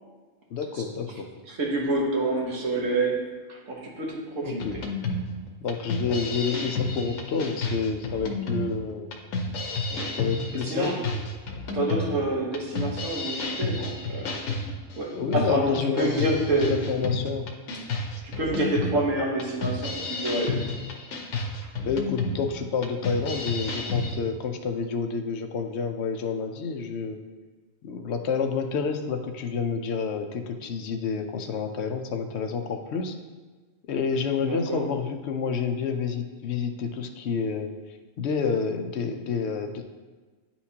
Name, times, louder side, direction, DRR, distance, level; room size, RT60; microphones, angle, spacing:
voice 1, 0.5-1.3 4.4-4.8 5.6-9.1 10.1-10.9 15.1-17.5 21.8-27.2 27.8-33.2 33.9-37.7 38.2-39.8, left 5 dB, 65° left, 6 dB, 0.8 m, -29 dB
voice 2, 1.5-3.2 3.5-4.6 6.1-6.2 9.9-10.1 10.6-11.0 11.7-14.6 15.0-16.8 18.4-20.6 34.4-34.8, right 2 dB, 80° right, -2 dB, 1.5 m, -28 dB
sound 1, 4.6-24.1, left 2 dB, 85° left, 1.1 m, -31 dB
9.7 x 4.3 x 2.8 m, 1.3 s
omnidirectional pair, 1.3 m